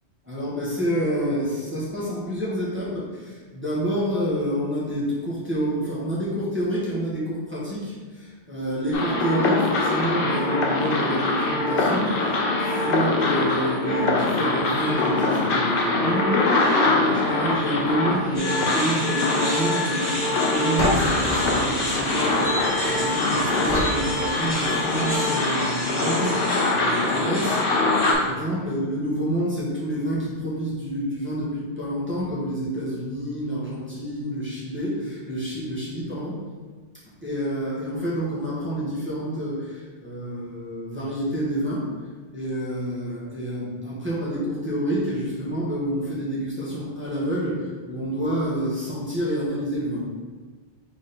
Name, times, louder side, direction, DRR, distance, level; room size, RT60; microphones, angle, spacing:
voice 1, 0.2-27.8 28.1-36.4 37.2-41.8 42.3-50.1, equal, 10° right, -9 dB, 1.1 m, -28 dB
sound 1, 8.9-28.1, left 2 dB, 55° left, 0.8 m, -23 dB
sound 2, 18.3-28.2, left 1 dB, 20° left, 1.3 m, -30 dB
sound 3, 20.8-23.0 23.6-25.0, equal, 90° left, 1.4 m, -29 dB
3.6 x 3.4 x 4.2 m, 1.5 s
omnidirectional pair, 1.2 m